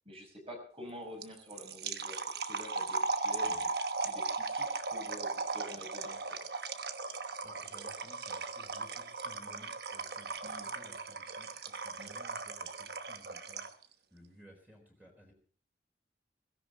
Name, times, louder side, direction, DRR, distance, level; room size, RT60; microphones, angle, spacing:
voice 1, 0.1-3.7 4.0-6.4 10.4-10.7 12.0-12.1, equal, 30° right, 2 dB, 5.3 m, -48 dB
sound 1, 1.2-13.8, right 4 dB, 55° right, 1.1 m, -37 dB
voice 2, 3.4-3.7 7.2-15.3, equal, 10° right, 0 dB, 4.1 m, -58 dB
16.5 x 16.5 x 4.2 m, 0.43 s
head